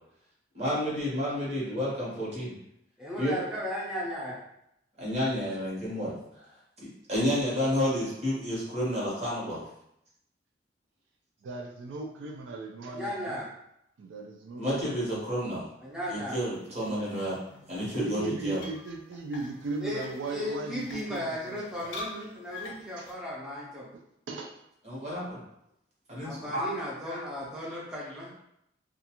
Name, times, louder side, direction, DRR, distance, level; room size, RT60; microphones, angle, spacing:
voice 1, 0.5-2.5 3.2-3.3 5.0-6.4 7.1-9.6 14.6-15.6 16.1-17.4 17.7-18.6 24.8-25.4 26.1-27.2 27.7-27.8, equal, 35° right, -6 dB, 1.0 m, -30 dB
voice 2, 3.0-4.4 12.9-13.5 15.8-16.5 19.8-23.9 26.2-28.3, equal, 5° right, -6 dB, 0.5 m, -36 dB
voice 3, 11.4-13.4 14.0-14.9 16.9-17.0 18.0-21.9 23.0-23.1 24.3-24.5, right 3 dB, 85° right, 2 dB, 0.3 m, -37 dB
sound 1, 16.5-23.1, left 2 dB, 80° left, 0.6 m, -46 dB
2.4 x 2.4 x 2.8 m, 0.77 s
head